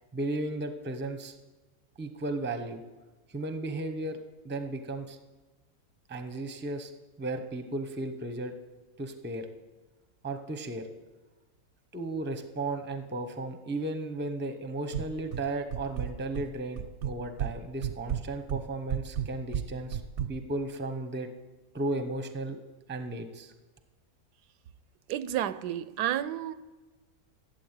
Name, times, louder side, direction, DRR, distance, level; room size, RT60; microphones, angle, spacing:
voice 1, 0.1-1.4 2.0-2.8 3.3-4.2 4.4-5.2 6.1-6.9 7.2-8.5 9.0-9.5 10.2-10.9 11.9-20.0 20.3-21.3 21.7-22.6 22.9-23.5, right 2 dB, 10° right, 0.5 m, -35 dB
sound 1, 14.9-15.4 15.7-16.5 16.8-17.5 17.8-20.3, right 9 dB, 60° right, 0.7 m, -32 dB
voice 2, 25.1-26.5, right 11 dB, 85° right, 1.2 m, -31 dB
13.0 x 7.9 x 8.1 m
omnidirectional pair, 1.7 m